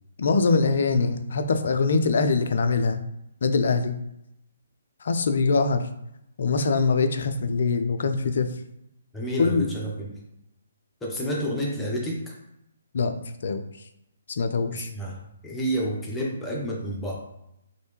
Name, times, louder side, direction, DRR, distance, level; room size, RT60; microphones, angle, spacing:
voice 1, 0.2-3.0 3.4-4.0 5.0-5.9 6.4-8.5 9.4-9.7 12.9-13.1 13.4-13.6 14.4-14.9, left 4 dB, 60° left, 8 dB, 0.4 m, -23 dB
voice 2, 9.1-10.1 11.0-12.3 14.7-17.2, equal, 10° left, -4 dB, 0.8 m, -30 dB
3.1 x 2.6 x 3.1 m, 0.82 s
figure-of-eight pair, 140°, 0 cm